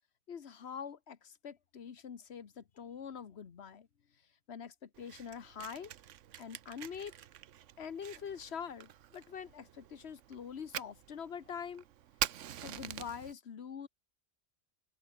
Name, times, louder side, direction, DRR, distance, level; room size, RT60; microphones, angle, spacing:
voice 1, 0.3-3.9 4.5-5.9 6.4-7.1 7.8-11.8 12.6-13.9, left 7 dB, 60° left, 1.4 m, -44 dB
Fire, 4.9-13.3, right 11 dB, 90° right, 1.1 m, -45 dB
open air
omnidirectional pair, 1.2 m